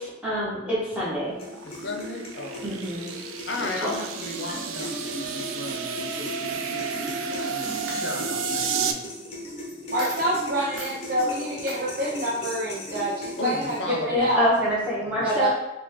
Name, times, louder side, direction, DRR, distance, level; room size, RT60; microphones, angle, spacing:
voice 1, 0.2-1.3 2.6-3.1 3.6-3.9 14.1-15.5, equal, 5° right, -8 dB, 1.2 m, -26 dB
sound 1, 0.9-8.9, right 6 dB, 90° right, 0.4 m, -32 dB
sound 2, 1.4-14.0, left 1 dB, 30° left, 0.9 m, -38 dB
voice 2, 1.6-2.8 3.5-9.0 13.4-14.3 15.0-15.5, left 2 dB, 60° left, 2 dB, 0.7 m, -35 dB
Coin (dropping), 7.2-7.5 7.9-8.5 8.8-8.9 9.7-9.8 10.0-10.3 10.8-11.0 11.7-11.8, right 2 dB, 75° right, 1.2 m, -39 dB
voice 3, 9.9-14.4 15.2-15.5, right 1 dB, 45° right, -6 dB, 0.7 m, -26 dB
4.9 x 2.5 x 3.6 m, 1.0 s
head